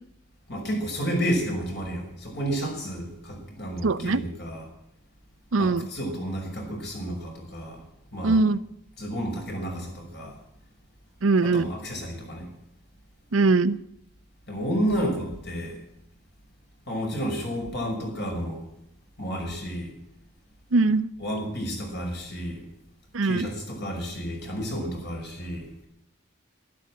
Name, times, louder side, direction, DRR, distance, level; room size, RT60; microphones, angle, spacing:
voice 1, 0.5-4.7 5.6-7.8 8.1-8.4 9.0-10.4 11.4-12.4 14.5-15.8 16.9-18.6 19.2-19.9 21.2-22.6 23.2-25.7, equal, 55° left, 1 dB, 5.9 m, -31 dB
voice 2, 3.8-4.2 5.5-5.9 8.2-8.6 11.2-11.7 13.3-13.8 20.7-21.1 23.1-23.5, right 3 dB, 85° right, 14 dB, 0.7 m, -21 dB
12.5 x 12.0 x 8.7 m, 0.80 s
head